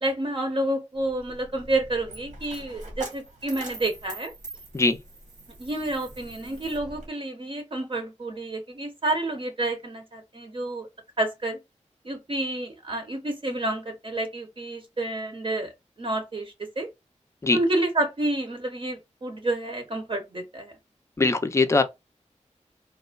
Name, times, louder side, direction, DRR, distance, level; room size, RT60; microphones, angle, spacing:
voice 1, 0.0-4.3 5.6-10.9 11.2-11.6 12.0-15.7 16.0-16.9 17.5-20.7, right 2 dB, 45° right, 0.7 m, -29 dB
Coin (dropping), 1.0-7.1, right 2 dB, 80° right, 1.1 m, -43 dB
voice 2, 21.2-21.8, left 3 dB, 25° left, 0.4 m, -21 dB
3.2 x 2.1 x 2.2 m
wide cardioid pair, 75°, 13 cm